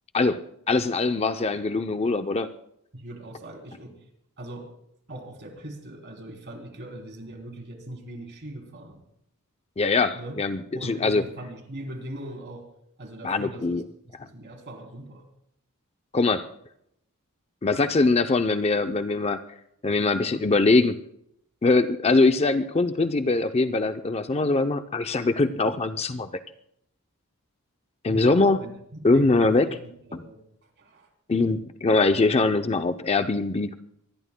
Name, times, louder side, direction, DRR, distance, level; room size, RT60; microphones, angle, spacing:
voice 1, 0.1-2.5 9.8-11.2 13.2-13.8 16.1-16.5 17.6-19.4 19.8-21.0 21.6-26.3 28.0-28.6 29.0-29.7 31.3-33.7, left 3 dB, 30° left, 9 dB, 0.5 m, -22 dB
voice 2, 2.9-4.0 4.4-4.7 5.1-9.0 10.1-10.4 10.7-12.7 13.0-15.2 28.1-31.1, right 1 dB, 50° right, 3 dB, 3.2 m, -40 dB
25.5 x 20.0 x 2.2 m, 0.74 s
head